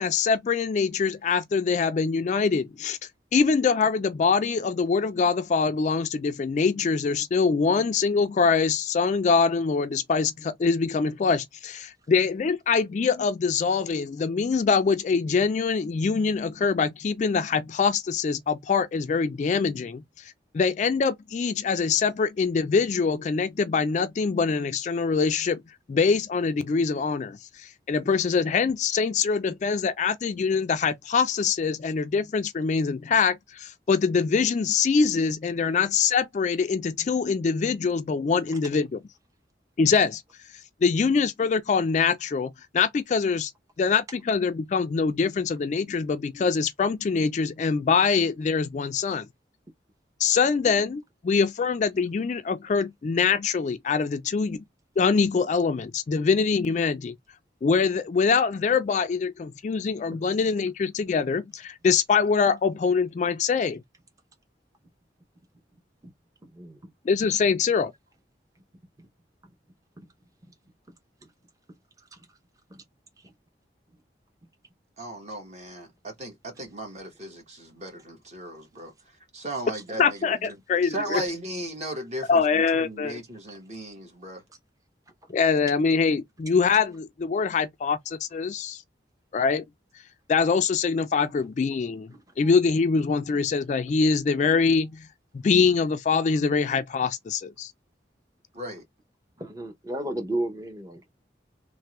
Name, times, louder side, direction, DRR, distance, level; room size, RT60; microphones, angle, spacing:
voice 1, 0.0-3.0 3.3-25.6 25.9-39.0 39.8-40.2 40.8-43.5 43.8-49.3 50.2-54.6 55.0-57.1 57.6-63.8 67.1-67.9 80.0-81.2 82.3-83.2 85.3-88.8 89.3-89.6 90.3-95.1 95.3-97.7, left 5 dB, 40° left, 0.3 m, -24 dB
voice 2, 66.4-66.9 69.0-69.1 69.4-69.5 70.0-70.1 70.5-70.6 70.9-71.0 71.2-71.3 72.1-72.3 72.7-72.8 73.2-73.3 79.7-79.8 85.3-85.4 92.1-92.3 99.4-101.0, right 1 dB, 20° right, 0.6 m, -35 dB
voice 3, 75.0-78.9 79.3-80.5 80.8-84.4 98.5-98.8, right 1 dB, 40° right, 1.1 m, -36 dB
3.3 x 2.1 x 2.9 m
head